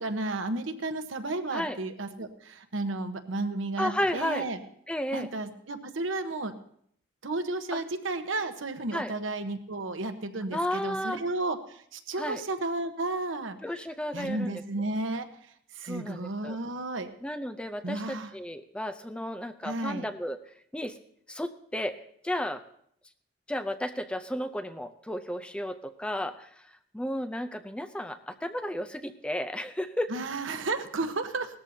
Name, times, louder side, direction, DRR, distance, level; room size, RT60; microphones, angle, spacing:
voice 1, 0.0-4.6 5.1-6.5 7.2-13.6 14.1-15.3 15.7-17.1 17.8-18.3 19.6-20.1 30.1-31.6, right 2 dB, 75° right, 8 dB, 1.1 m, -33 dB
voice 2, 3.8-4.5 4.9-5.3 7.7-7.8 8.9-9.1 10.5-11.2 12.2-12.4 13.6-14.6 15.8-16.6 17.2-20.4 20.7-20.9 21.3-22.0 22.2-22.6 23.5-26.5 26.9-30.1, left 1 dB, 5° left, 8 dB, 0.5 m, -33 dB
18.5 x 13.5 x 2.8 m, 0.66 s
head